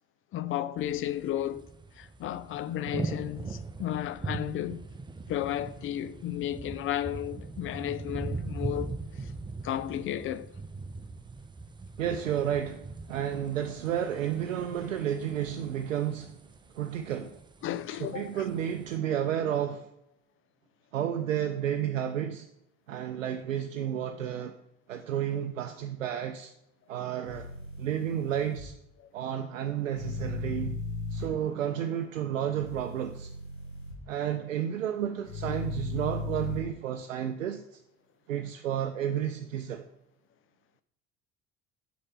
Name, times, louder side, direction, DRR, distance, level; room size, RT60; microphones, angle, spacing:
voice 1, 0.3-1.7 2.0-4.8 5.3-9.3 9.6-10.5 17.6-18.4, left 12 dB, 35° left, 0.5 m, -33 dB
sound 1, 0.8-19.0, right 3 dB, 10° right, 0.6 m, -41 dB
voice 2, 12.0-16.4 16.7-17.4 18.0-19.9 20.9-22.5 22.9-24.6 24.9-26.5 26.9-27.5 27.8-28.7 29.1-30.8 31.1-33.3 34.1-37.8 38.3-39.9, right 10 dB, 80° right, 0.6 m, -31 dB
sound 2, 27.2-28.6 29.9-31.3 32.6-33.9 35.3-36.6, left 3 dB, 80° left, 1.6 m, -37 dB
6.4 x 5.9 x 5.8 m
figure-of-eight pair, 55°, 38 cm